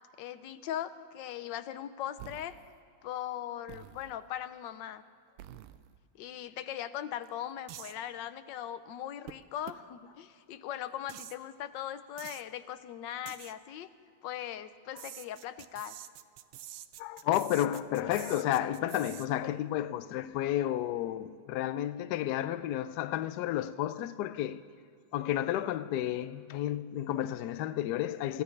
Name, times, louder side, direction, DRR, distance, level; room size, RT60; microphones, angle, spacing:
voice 1, 0.2-2.6 3.0-5.0 6.2-13.9 14.2-15.9, left 11 dB, 70° left, 1.2 m, -39 dB
sound 1, 2.2-2.8 3.7-4.2 5.4-6.0 7.2-7.3 7.7-7.9 9.3-9.4 9.7-9.8 11.1-11.4 12.2-12.4 13.3-13.5 15.0-19.3, right 12 dB, 80° right, 1.5 m, -47 dB
voice 2, 17.0-24.6 25.1-28.4, left 12 dB, 90° left, 0.9 m, -31 dB
28.0 x 14.5 x 3.2 m
omnidirectional pair, 2.4 m